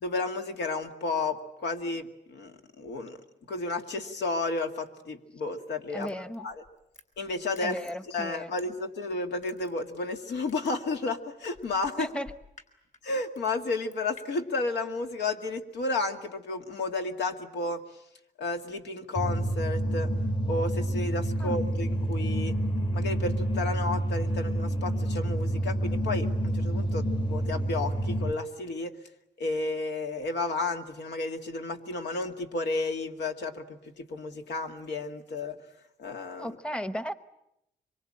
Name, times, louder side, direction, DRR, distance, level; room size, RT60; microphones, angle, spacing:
voice 1, 0.0-3.2 3.5-6.1 6.4-6.6 7.2-12.1 13.0-17.8 18.4-20.1 20.5-22.5 22.9-28.9 29.4-35.6 36.0-36.6, left 3 dB, 85° left, 5 dB, 2.1 m, -32 dB
voice 2, 5.9-6.5 7.6-8.5 12.0-12.3 21.4-21.6 36.4-37.1, equal, 5° left, 13 dB, 0.9 m, -35 dB
Crushing, 6.0-9.0 9.4-14.3 14.6-14.7, left 5 dB, 45° left, 4.0 m, -52 dB
sound 1, 19.1-28.3, right 1 dB, 25° left, 1.2 m, -28 dB
25.5 x 23.5 x 8.8 m, 0.83 s
cardioid pair, 125°, 18 cm